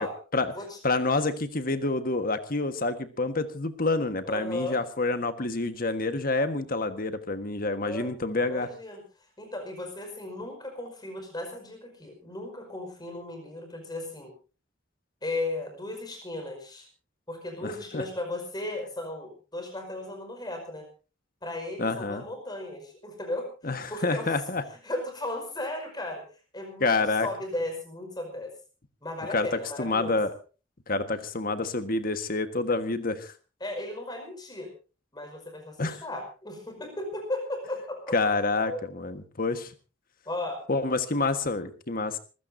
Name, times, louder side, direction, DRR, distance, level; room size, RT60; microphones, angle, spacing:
voice 1, 0.8-8.7 17.6-18.0 21.8-22.2 23.6-24.6 26.8-27.3 29.3-29.5 29.8-30.3 30.9-33.3 35.8-36.0 38.1-39.7 40.7-42.2, left 3 dB, 45° left, 9 dB, 1.5 m, -28 dB
voice 2, 4.2-4.8 7.8-9.0 9.4-14.3 15.2-16.9 17.3-20.9 21.4-23.5 23.9-24.3 24.8-26.2 26.5-26.9 27.2-28.5 29.0-30.2 33.6-34.7 35.1-38.2 38.7-38.8 40.3-40.6, left 1 dB, 20° left, 4 dB, 5.3 m, -36 dB
26.5 x 15.5 x 2.8 m, 0.34 s
head